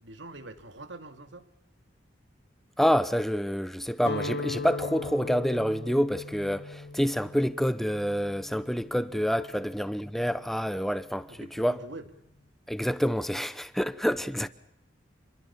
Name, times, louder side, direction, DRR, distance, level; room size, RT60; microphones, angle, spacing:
voice 1, 0.0-1.5 9.5-9.6 11.3-12.1, right 2 dB, 75° right, 2.2 m, -44 dB
voice 2, 2.8-11.8 12.7-14.5, equal, ahead, 0.9 m, -27 dB
Guitar, 4.0-10.0, left 2 dB, 60° left, 2.4 m, -39 dB
28.0 x 22.5 x 7.0 m
head